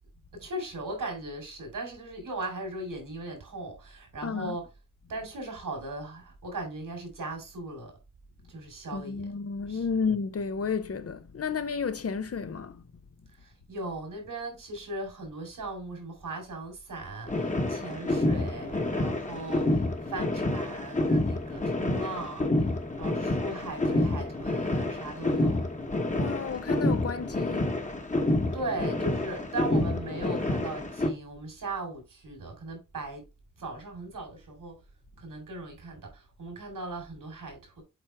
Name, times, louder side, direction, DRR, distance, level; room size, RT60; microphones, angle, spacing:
voice 1, 0.4-4.7 5.1-7.9 8.5-9.3 9.7-10.0 13.4-22.7 23.0-25.6 28.5-33.3 33.6-34.8 35.2-37.8, right 2 dB, 85° right, 4.1 m, -38 dB
voice 2, 4.2-4.6 8.9-12.8 26.1-27.7, left 5 dB, 50° left, 0.8 m, -32 dB
sound 1, 17.3-31.1, left 2 dB, 25° left, 1.2 m, -28 dB
7.9 x 4.5 x 3.4 m
wide cardioid pair, 115°, 32 cm